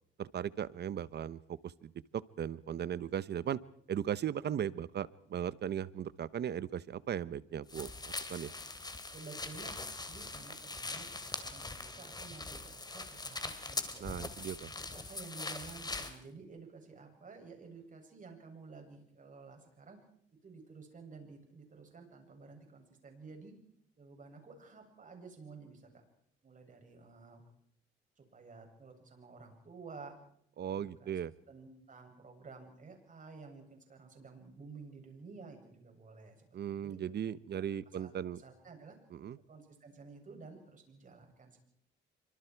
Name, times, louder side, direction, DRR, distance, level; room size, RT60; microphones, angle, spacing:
voice 1, 0.2-3.6 3.9-8.5 14.0-14.7 30.6-31.3 36.5-38.4 39.1-39.4, right 9 dB, 55° right, 17 dB, 1.0 m, -37 dB
sound 1, 7.7-16.2, left 3 dB, 20° left, 2.9 m, -42 dB
voice 2, 9.1-9.8 10.1-14.1 14.8-20.0 20.4-23.5 24.0-26.0 26.4-27.4 28.2-30.2 30.7-31.2 31.5-36.5 36.8-37.0 37.5-37.6 38.0-39.0 39.5-41.5, right 4 dB, 40° right, 3 dB, 7.6 m, -52 dB
27.5 x 25.0 x 4.7 m, 0.67 s
cardioid pair, 90°, 20 cm